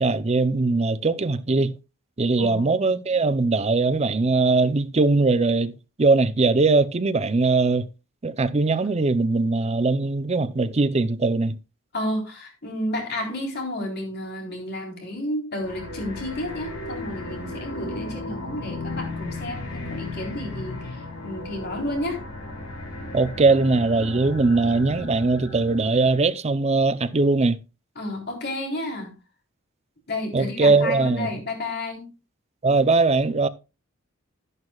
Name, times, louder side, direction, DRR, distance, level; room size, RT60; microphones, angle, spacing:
voice 1, 0.0-1.8 2.2-7.9 8.2-11.6 23.1-27.6 30.3-31.3 32.6-33.5, right 3 dB, 30° right, 0.6 m, -21 dB
voice 2, 11.9-22.2 28.0-29.1 30.1-32.1, left 1 dB, 55° left, 3.8 m, -31 dB
sound 1, 15.6-26.2, left 2 dB, 80° left, 4.5 m, -35 dB
11.5 x 11.0 x 2.3 m
head